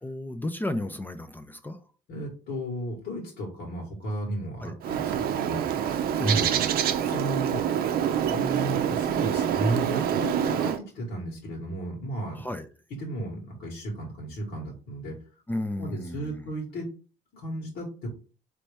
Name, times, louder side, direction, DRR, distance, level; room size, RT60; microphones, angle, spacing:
voice 1, 0.0-1.8 4.6-4.8 6.2-6.7 12.3-12.7 15.5-16.5, left 1 dB, 10° left, 0.4 m, -34 dB
voice 2, 2.1-6.6 7.0-7.6 8.3-12.4 13.0-15.1 15.8-16.9 17.3-18.1, right 1 dB, 70° left, 1.7 m, -34 dB
Bird, 4.8-10.8, right 9 dB, 65° right, 0.5 m, -26 dB
4.1 x 3.1 x 3.4 m
cardioid pair, 110°, 17 cm